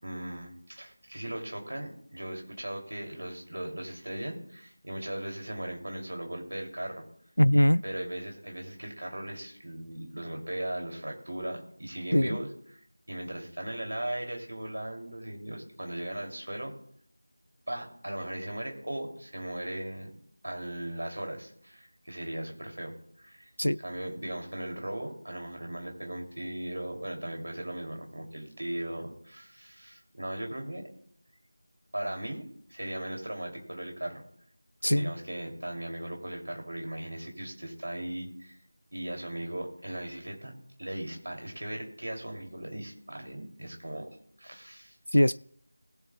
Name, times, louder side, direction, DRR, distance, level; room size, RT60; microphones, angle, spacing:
voice 1, 0.0-7.0 7.8-12.8 13.1-16.7 17.7-20.1 20.4-23.5 23.8-30.8 31.9-34.2 34.9-38.6 38.9-40.5 40.8-44.1 44.4-44.9, right 1 dB, 60° right, 3.0 m, -38 dB
voice 2, 7.4-7.8 12.1-12.4 23.6-23.8 34.8-35.1 45.1-45.4, equal, 80° left, 0.4 m, -22 dB
19.5 x 7.5 x 2.4 m
figure-of-eight pair, 170°, 0 cm